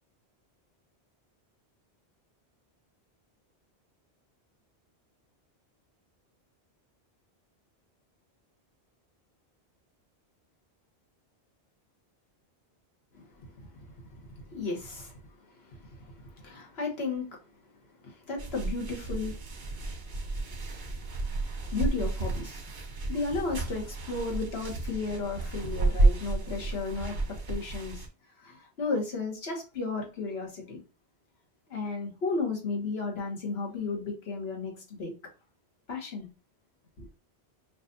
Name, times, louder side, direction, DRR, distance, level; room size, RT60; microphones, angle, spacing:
voice 1, 14.5-15.2 15.6-17.3 18.0-19.4 21.7-22.6 23.0-27.1 27.5-28.0 28.4-30.8 31.7-35.1 35.9-36.3 37.0-37.1, left 3 dB, 70° left, 1.4 m, -34 dB
sound 1, 18.4-28.1, right 2 dB, 90° right, 1.3 m, -31 dB
6.0 x 2.4 x 2.6 m
omnidirectional pair, 1.1 m